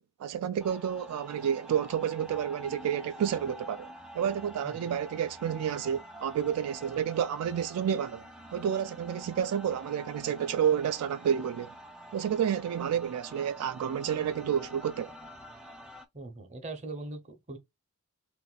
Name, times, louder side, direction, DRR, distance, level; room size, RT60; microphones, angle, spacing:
voice 1, 0.0-8.2 8.5-11.7 12.1-15.1, right 8 dB, 80° right, 0.3 m, -30 dB
sound 1, 0.6-16.1, equal, 5° right, 0.3 m, -47 dB
voice 2, 16.1-17.6, right 2 dB, 30° right, 0.7 m, -41 dB
2.5 x 2.5 x 3.8 m
head